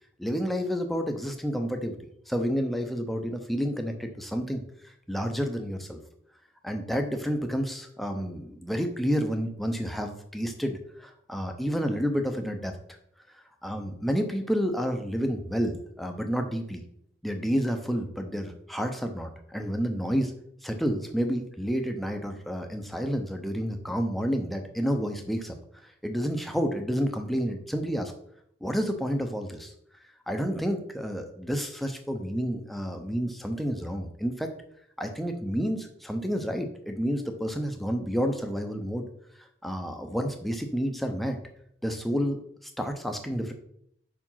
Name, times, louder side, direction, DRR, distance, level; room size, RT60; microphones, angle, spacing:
voice 1, 0.2-2.0 2.3-6.0 6.6-12.7 13.6-16.8 17.2-20.3 20.6-25.5 25.8-28.1 28.6-29.7 30.3-34.5 35.0-39.1 39.6-41.4 41.8-42.4 42.6-43.5, equal, ahead, 4 dB, 0.6 m, -30 dB
5.0 x 4.8 x 5.6 m, 0.70 s
head